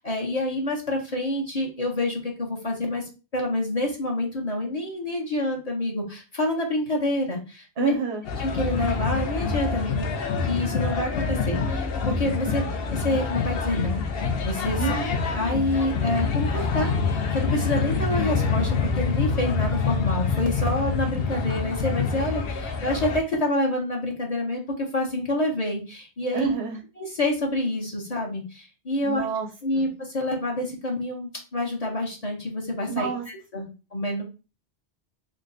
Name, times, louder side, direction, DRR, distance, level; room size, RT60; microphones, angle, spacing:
voice 1, 0.0-7.9 8.4-12.6 13.0-14.0 14.4-15.0 15.4-26.5 27.0-29.3 29.6-33.6 33.9-34.2, left 1 dB, 35° left, -2 dB, 0.9 m, -27 dB
voice 2, 7.8-8.2 12.5-12.7 14.8-15.2 26.3-26.8 29.0-29.8 32.8-33.2 33.5-33.7, right 6 dB, 90° right, 3 dB, 0.9 m, -30 dB
sound 1, 8.3-23.2, left 4 dB, 65° left, 0.8 m, -26 dB
3.6 x 2.2 x 3.8 m, 0.32 s
omnidirectional pair, 1.1 m